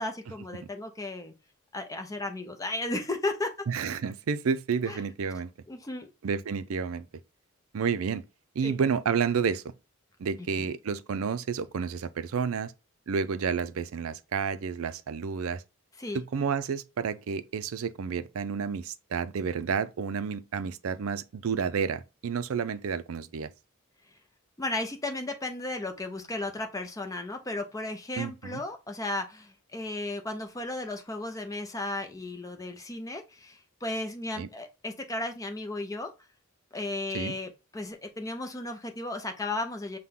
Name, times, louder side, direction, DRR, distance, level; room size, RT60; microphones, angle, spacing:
voice 1, 0.0-1.3 1.7-3.5 4.9-5.0 5.7-6.1 8.6-8.7 10.4-10.7 16.0-16.2 24.6-36.1 36.7-40.0, left 2 dB, 15° left, 0.6 m, -34 dB
voice 2, 3.7-5.5 6.2-7.1 7.7-8.2 8.6-9.7 10.2-12.7 13.1-15.6 16.1-23.5 28.2-28.6 34.4-34.5 37.1-37.3, right 6 dB, 75° right, 0.4 m, -30 dB
5.8 x 2.2 x 3.6 m
head